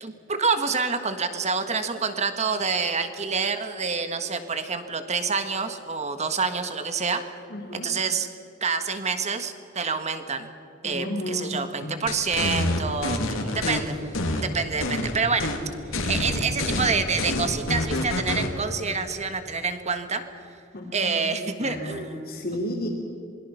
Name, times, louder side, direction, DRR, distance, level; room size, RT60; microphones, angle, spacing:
voice 1, 0.0-7.2 7.7-8.3 8.6-10.5 10.8-15.5 16.1-20.2 20.9-22.2, right 5 dB, 35° right, 8 dB, 1.6 m, -27 dB
voice 2, 7.5-7.9 10.8-12.1 20.7-22.9, left 1 dB, 50° left, -3 dB, 3.1 m, -33 dB
sound 1, 12.1-13.8 14.1-15.1 15.4-15.6 15.9-18.5, left 1 dB, 75° left, 3.0 m, -27 dB
27.0 x 22.5 x 5.8 m, 2.6 s
head